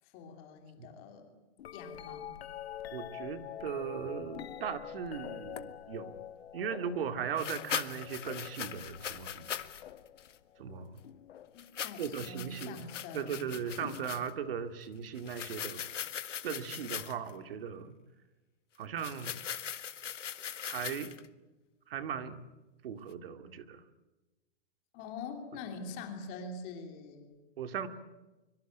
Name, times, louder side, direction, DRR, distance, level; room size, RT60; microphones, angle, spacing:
voice 1, 0.0-1.3 1.7-2.4 11.5-14.1 24.9-27.4, left 3 dB, 25° left, 5 dB, 3.1 m, -45 dB
sound 1, 1.6-11.7 12.6-13.1 13.8-14.8 16.6-16.7, left 10 dB, 60° left, 1.4 m, -46 dB
voice 2, 2.9-6.2 6.5-9.5 10.6-11.0 12.0-12.8 13.1-15.9 16.4-18.0 18.8-19.4 20.6-21.1 21.9-22.4 22.8-23.8 27.6-27.9, right 7 dB, 50° right, 9 dB, 2.3 m, -38 dB
sound 2, 5.6-5.7 7.4-9.8 10.2-10.4 11.6-14.3 15.2-17.3 19.0-21.3, left 9 dB, 90° left, 1.7 m, -40 dB
25.0 x 23.0 x 9.2 m, 1.1 s
hypercardioid pair, 170°, 36 cm